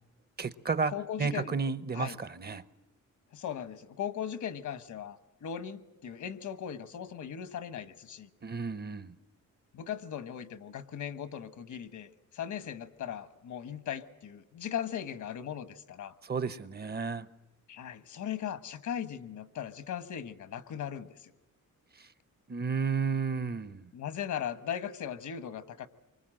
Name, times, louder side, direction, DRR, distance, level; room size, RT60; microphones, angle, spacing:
voice 1, 0.4-0.9 1.2-2.6 8.4-9.1 16.2-17.3 22.0-22.1 22.5-23.9, right 5 dB, 30° right, 0.8 m, -32 dB
voice 2, 0.9-1.6 1.9-2.2 3.3-8.3 9.7-16.1 17.7-21.3 23.9-25.9, left 9 dB, 70° left, 1.4 m, -38 dB
26.0 x 24.5 x 7.7 m
cardioid pair, 120°, 30 cm